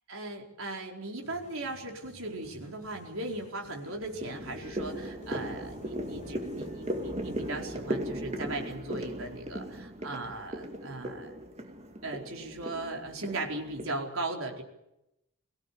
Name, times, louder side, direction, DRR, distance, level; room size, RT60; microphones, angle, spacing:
voice 1, 0.1-11.3 12.0-14.6, right 2 dB, 70° right, 1 dB, 4.6 m, -38 dB
sound 1, 1.2-7.6, left 2 dB, 35° left, 6.1 m, -53 dB
sound 2, 2.3-2.8 3.2-14.0, right 1 dB, 30° right, 2.3 m, -38 dB
23.5 x 16.5 x 8.5 m, 0.86 s
head